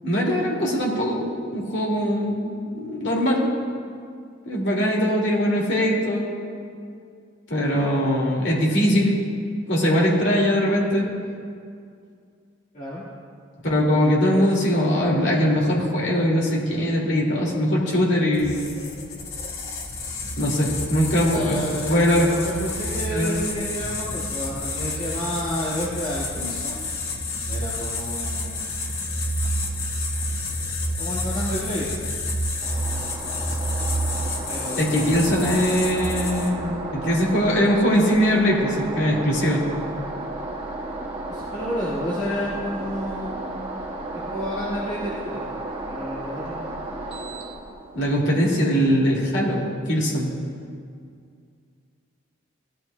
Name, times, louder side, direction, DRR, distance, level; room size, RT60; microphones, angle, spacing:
voice 1, 0.0-3.5 4.4-6.3 7.5-9.2 9.7-11.1 13.6-18.7 20.4-21.6 21.9-22.3 23.1-23.4 34.8-39.6 47.9-50.3, equal, 55° left, -3 dB, 2.3 m, -21 dB
sound 1, 18.3-36.7, left 1 dB, 85° left, 1.7 m, -29 dB
voice 2, 21.2-26.9 27.5-28.5 31.0-31.9 34.5-35.1 41.3-43.6 44.3-45.4 45.9-46.9, equal, 35° left, -9 dB, 1.7 m, -30 dB
sound 2, 32.6-48.1, right 2 dB, 25° right, 1.4 m, -33 dB
17.0 x 12.0 x 2.2 m, 2.3 s
head